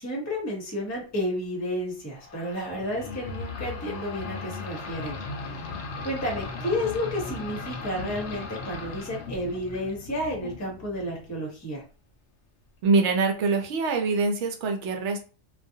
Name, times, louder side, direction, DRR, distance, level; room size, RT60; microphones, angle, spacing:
voice 1, 0.0-5.2 5.5-5.7 6.0-11.8, equal, 15° left, -1 dB, 0.7 m, -31 dB
sound 1, 2.2-11.5, left 4 dB, 75° left, 0.9 m, -37 dB
voice 2, 12.8-15.2, right 4 dB, 80° right, 3 dB, 0.9 m, -24 dB
2.4 x 2.2 x 2.6 m, 0.35 s
omnidirectional pair, 1.2 m